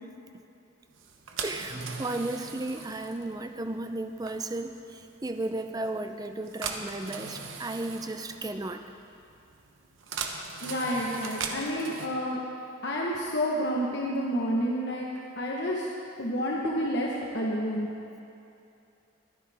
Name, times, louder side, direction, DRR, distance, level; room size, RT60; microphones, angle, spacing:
sound 1, 1.0-12.1, right 5 dB, 85° right, 1.1 m, -40 dB
voice 1, 1.4-8.8, right 2 dB, 20° right, 7 dB, 0.5 m, -34 dB
voice 2, 10.6-12.4 12.8-15.1 15.4-15.9 16.2-17.9, equal, 60° left, -3 dB, 1.2 m, -29 dB
22.5 x 9.8 x 3.5 m, 2.6 s
head